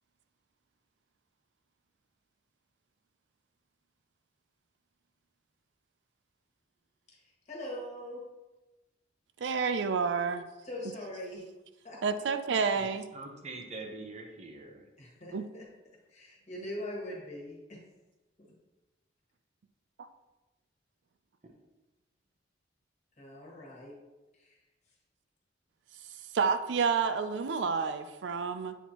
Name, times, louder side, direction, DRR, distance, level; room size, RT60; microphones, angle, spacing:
voice 1, 7.1-8.2 10.0-10.1 10.6-11.4 11.8-12.0 15.0-15.7 16.1-17.8 23.2-23.9 24.3-24.6 24.9-25.0, left 1 dB, 40° left, -3 dB, 1.6 m, -42 dB
voice 2, 9.4-10.5 12.0-13.0 15.3-15.4 26.3-28.8, right 5 dB, 75° right, 10 dB, 0.4 m, -29 dB
voice 3, 12.7-14.9 21.4-21.5, right 2 dB, 40° right, 2 dB, 0.8 m, -44 dB
8.0 x 4.2 x 2.9 m, 1.1 s
head